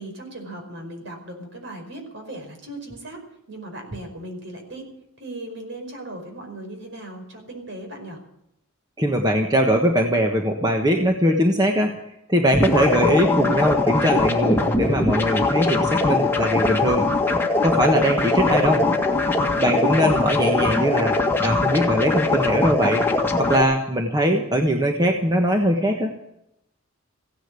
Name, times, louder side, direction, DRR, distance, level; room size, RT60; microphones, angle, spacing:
voice 1, 0.0-3.2 3.5-4.9 5.2-8.2 19.5-19.8, right 1 dB, 60° right, 3 dB, 5.1 m, -37 dB
voice 2, 9.0-12.0 12.3-17.1 17.6-18.9 19.6-23.0 23.4-26.2, equal, 20° right, 2 dB, 1.4 m, -21 dB
sound 1, 12.5-23.6, left 3 dB, 10° left, 1.7 m, -21 dB
16.5 x 10.5 x 8.4 m, 0.82 s
head